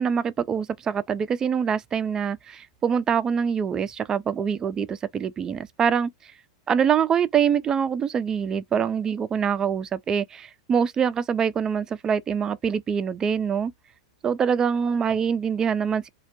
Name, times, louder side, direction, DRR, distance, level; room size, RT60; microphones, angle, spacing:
voice 1, 0.0-6.1 6.7-13.7 14.2-16.1, right 7 dB, 20° right, 0.3 m, -24 dB
2.1 x 2.1 x 2.7 m
hypercardioid pair, 120°, 3 cm